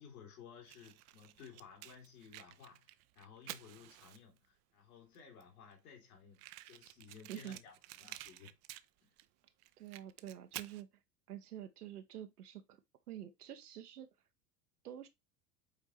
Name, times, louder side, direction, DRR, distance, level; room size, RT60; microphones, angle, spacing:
voice 1, 0.0-8.5 9.0-9.1, left 7 dB, 65° left, 3.3 m, -57 dB
Fire, 0.6-4.5 5.1-5.2 5.4-5.5 5.7-5.8 6.3-9.3 9.6-10.8, right 16 dB, 35° right, 0.6 m, -51 dB
voice 2, 9.8-10.9 11.3-12.8 13.1-14.1 14.8-15.1, right 11 dB, 70° right, 1.0 m, -47 dB
8.1 x 4.5 x 3.2 m
figure-of-eight pair, 75°, 47 cm